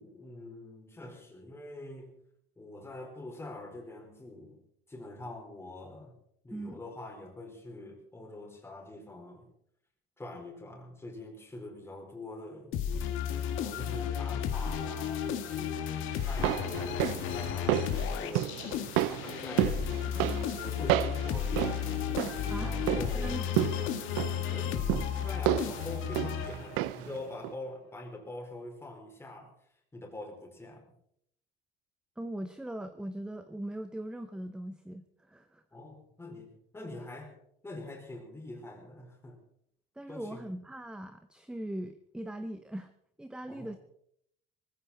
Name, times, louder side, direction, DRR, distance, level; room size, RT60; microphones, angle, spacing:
voice 1, 0.0-2.2 2.6-4.6 4.9-6.1 6.4-9.5 10.2-12.8 13.3-15.8 16.2-20.2 20.5-23.4 24.5-29.5 29.9-30.8 35.7-37.3 37.6-39.4 40.1-40.4 43.5-43.8, left 2 dB, 10° left, 1 dB, 4.5 m, -45 dB
sound 1, 12.7-27.0, left 8 dB, 70° left, 2.2 m, -33 dB
sound 2, 16.2-27.2 27.4-27.5, right 15 dB, 90° right, 0.7 m, -32 dB
voice 2, 23.2-23.6 23.9-24.0 32.2-35.6 40.0-42.9 43.2-43.8, right 1 dB, 5° right, 9 dB, 0.7 m, -40 dB
19.5 x 15.0 x 4.3 m, 0.71 s
cardioid pair, 135°, 21 cm